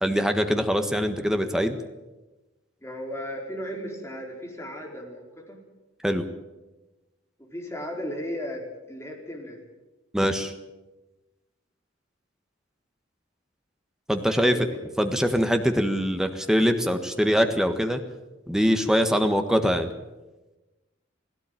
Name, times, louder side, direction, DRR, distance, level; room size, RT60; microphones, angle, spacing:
voice 1, 0.0-1.8 6.0-6.2 10.1-10.5 14.1-14.5 15.0-18.0 18.5-19.9, equal, 5° right, 7 dB, 1.5 m, -23 dB
voice 2, 2.8-5.6 7.5-9.6 14.3-14.8, equal, 15° left, 0 dB, 4.5 m, -35 dB
18.0 x 17.0 x 9.0 m, 1.1 s
head